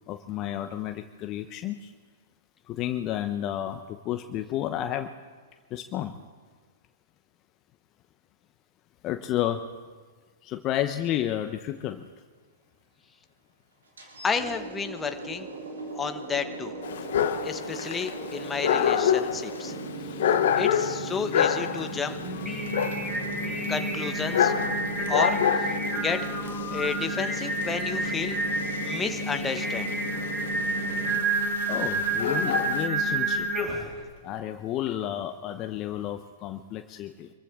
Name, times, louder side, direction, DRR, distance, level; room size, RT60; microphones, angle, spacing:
voice 1, 0.1-1.9 2.7-5.1 5.7-6.1 9.0-9.6 10.4-12.1 31.7-33.5 34.2-37.3, left 12 dB, 35° left, 7 dB, 0.8 m, -31 dB
sound 1, 14.0-31.2, right 1 dB, 90° right, 3.8 m, -38 dB
voice 2, 14.2-15.5 15.9-16.7 17.4-19.7 20.5-22.2 23.7-24.5 25.1-25.7 26.0-26.3 26.7-28.4 28.8-29.9, left 5 dB, 15° left, 7 dB, 1.1 m, -31 dB
Dog, 16.8-32.9, left 8 dB, 65° left, 1.0 m, -28 dB
Singing, 22.2-34.0, right 2 dB, 10° right, 5.4 m, -30 dB
26.0 x 15.0 x 3.7 m, 1.5 s
hypercardioid pair, 120°, 0 cm